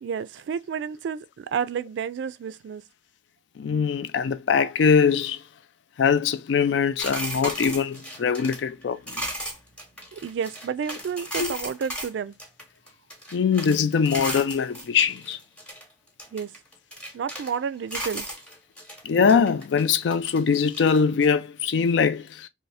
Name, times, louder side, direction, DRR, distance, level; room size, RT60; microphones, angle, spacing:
voice 1, 0.0-2.8 10.1-12.3 16.3-16.5 17.1-18.3, right 7 dB, 70° right, 0.3 m, -30 dB
voice 2, 3.6-5.4 6.0-9.3 11.4-11.5 13.3-15.4 19.0-22.5, left 6 dB, 75° left, 0.4 m, -22 dB
sound 1, 7.0-12.1 12.4-13.8 14.1-15.8 16.2-17.6 17.9-19.0 19.3-21.3, equal, 5° left, 0.8 m, -35 dB
2.7 x 2.7 x 3.2 m
head